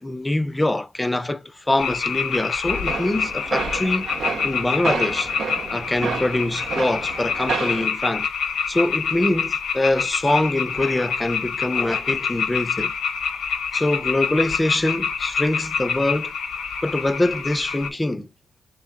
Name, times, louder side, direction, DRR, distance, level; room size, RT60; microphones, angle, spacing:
voice 1, 0.0-4.1 4.4-5.3 5.7-8.3 8.7-12.9 13.7-16.3 16.8-18.3, left 1 dB, 10° left, 0.4 m, -24 dB
sound 1, 1.8-17.9, left 6 dB, 70° left, 0.7 m, -27 dB
sound 2, 2.7-7.9, right 5 dB, 65° right, 0.8 m, -30 dB
4.3 x 3.3 x 2.4 m
cardioid pair, 90°, 0 cm